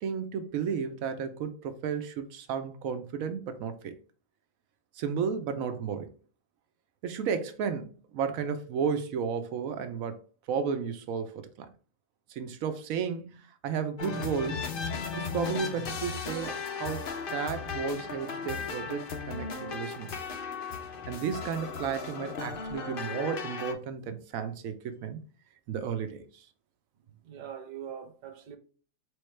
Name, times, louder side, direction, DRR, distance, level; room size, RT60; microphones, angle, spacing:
voice 1, 0.0-3.9 5.0-6.1 7.0-10.2 10.5-11.7 12.3-14.7 15.1-17.0 17.3-20.1 21.1-25.2 25.7-26.5, right 6 dB, 90° right, 1.1 m, -33 dB
sound 1, 14.0-23.7, left 5 dB, 50° left, 0.7 m, -36 dB
voice 2, 27.1-28.6, right 8 dB, 45° right, 0.6 m, -43 dB
4.5 x 3.2 x 3.2 m
omnidirectional pair, 1.4 m